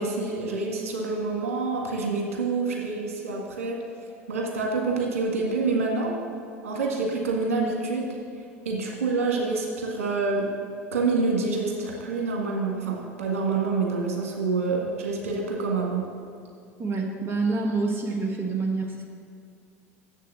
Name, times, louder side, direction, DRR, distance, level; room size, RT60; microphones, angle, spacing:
voice 1, 0.0-3.8 4.3-6.1 6.6-8.1 8.7-10.5 10.9-16.1, right 3 dB, 75° right, -1 dB, 1.7 m, -27 dB
voice 2, 16.8-19.0, right 3 dB, 30° right, 1 dB, 1.2 m, -27 dB
7.4 x 6.6 x 7.7 m, 2.4 s
figure-of-eight pair, 75°, 8 cm